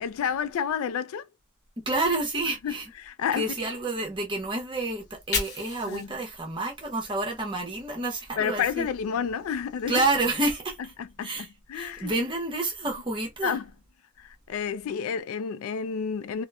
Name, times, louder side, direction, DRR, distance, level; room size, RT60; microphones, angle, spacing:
voice 1, 0.0-1.3 2.6-3.5 5.8-6.2 8.4-10.1 10.8-12.1 13.4-13.7 14.2-16.4, left 7 dB, 70° left, 0.3 m, -30 dB
voice 2, 1.9-2.8 3.4-8.9 9.9-10.8 11.2-11.5 11.7-13.5, right 2 dB, 25° right, 0.8 m, -29 dB
Fire, 4.9-8.1 8.5-10.5, left 4 dB, 50° left, 0.9 m, -38 dB
2.8 x 2.1 x 2.3 m
head